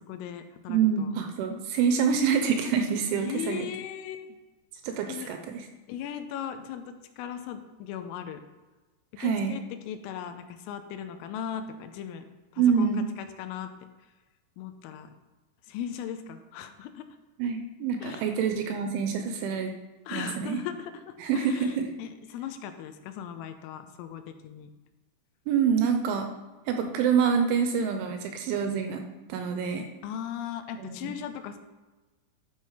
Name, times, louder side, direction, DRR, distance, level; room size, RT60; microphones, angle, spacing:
voice 1, 0.0-1.1 3.1-4.4 5.0-5.3 5.9-8.4 9.2-12.2 12.5-13.9 14.6-15.1 15.6-17.1 18.0-18.4 20.1-24.7 30.0-31.6, left 9 dB, 85° left, 8 dB, 3.4 m, -38 dB
voice 2, 0.7-3.7 4.8-5.7 9.2-9.5 12.6-13.1 17.4-19.7 20.1-20.6 21.2-21.9 25.5-26.3 26.7-29.0 29.3-29.9 30.8-31.1, right 7 dB, 75° right, 5 dB, 3.1 m, -26 dB
12.5 x 6.5 x 5.6 m, 1.2 s
omnidirectional pair, 5.9 m